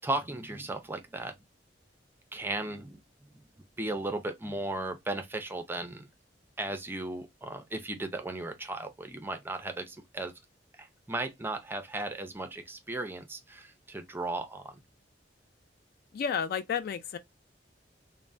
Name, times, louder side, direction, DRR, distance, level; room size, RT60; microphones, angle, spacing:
voice 1, 0.0-1.3 2.3-3.4 3.8-6.1 6.6-10.3 10.8-14.8, right 2 dB, 10° right, 0.4 m, -36 dB
voice 2, 16.1-17.2, left 7 dB, 55° left, 0.3 m, -31 dB
3.2 x 2.0 x 2.5 m
head